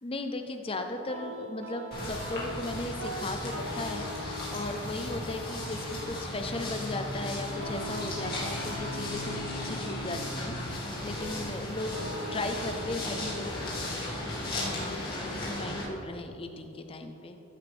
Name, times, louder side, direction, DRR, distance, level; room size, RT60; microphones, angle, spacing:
voice 1, 0.0-13.5 14.2-17.4, left 2 dB, 25° left, 6 dB, 0.5 m, -37 dB
sound 1, 1.1-16.0, right 1 dB, 55° right, 0.9 m, -44 dB
sound 2, 1.9-15.8, left 1 dB, 45° left, 2.4 m, -36 dB
sound 3, 5.9-15.0, equal, 65° left, 1.1 m, -49 dB
14.0 x 7.2 x 3.5 m, 2.9 s
head